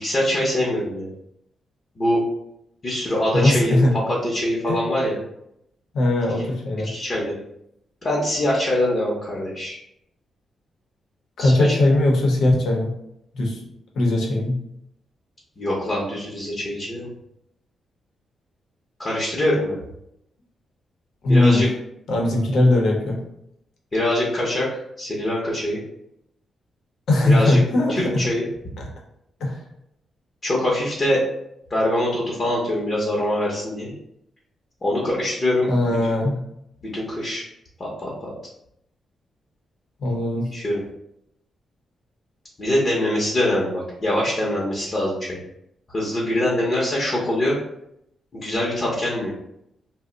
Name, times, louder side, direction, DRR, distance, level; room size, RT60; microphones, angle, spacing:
voice 1, 0.0-1.1 2.0-2.2 2.8-5.2 6.4-6.5 6.8-7.3 8.0-9.8 11.4-11.8 15.6-17.1 19.0-19.8 21.3-21.7 23.9-24.7 25.0-25.8 27.2-27.6 28.0-28.4 30.4-31.2 31.7-33.9 34.8-35.7 36.0-36.1 36.9-37.4 37.8-38.3 40.5-40.8 42.6-45.4 45.9-47.6 48.3-49.3, left 1 dB, 30° left, -5 dB, 0.7 m, -23 dB
voice 2, 3.3-3.9 4.7-4.8 5.9-6.9 11.4-12.9 13.3-13.6 13.9-14.6 21.2-21.7 22.1-23.2 27.1-28.2 29.4-29.6 35.7-36.4 40.0-40.5, left 1 dB, 75° left, -1 dB, 0.8 m, -19 dB
2.5 x 2.1 x 3.7 m, 0.78 s
cardioid pair, 135°, 0 cm